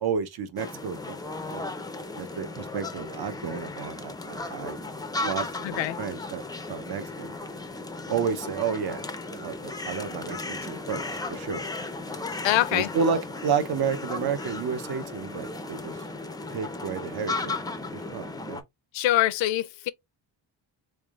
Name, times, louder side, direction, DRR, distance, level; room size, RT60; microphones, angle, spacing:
voice 1, 0.0-1.2 1.5-1.7 2.2-4.8 5.2-7.3 8.1-9.0 9.3-11.7 12.7-16.0 16.5-18.6, right 6 dB, 60° right, 0.8 m, -31 dB
sound 1, 0.6-18.6, left 2 dB, 10° left, 0.4 m, -35 dB
voice 2, 5.6-6.0 12.4-12.9 18.9-19.9, left 14 dB, 85° left, 0.5 m, -24 dB
3.6 x 3.4 x 2.4 m
wide cardioid pair, 145°, 44 cm